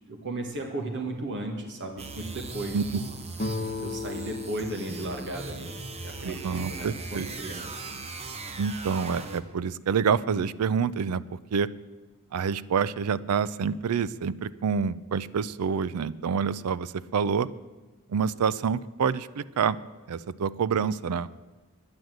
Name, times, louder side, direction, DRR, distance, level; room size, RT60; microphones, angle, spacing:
voice 1, 0.1-3.0 3.8-5.7 6.0-7.6, right 2 dB, 55° right, 2 dB, 1.6 m, -35 dB
sound 1, 2.0-9.6, right 3 dB, 30° right, 0.8 m, -39 dB
sound 2, 3.3-7.0, left 3 dB, 35° left, 0.9 m, -37 dB
voice 2, 6.2-7.3 8.6-11.7 12.3-17.5 18.1-19.8 20.1-21.3, right 6 dB, 80° right, 18 dB, 0.4 m, -27 dB
10.5 x 9.6 x 7.8 m, 1.3 s
head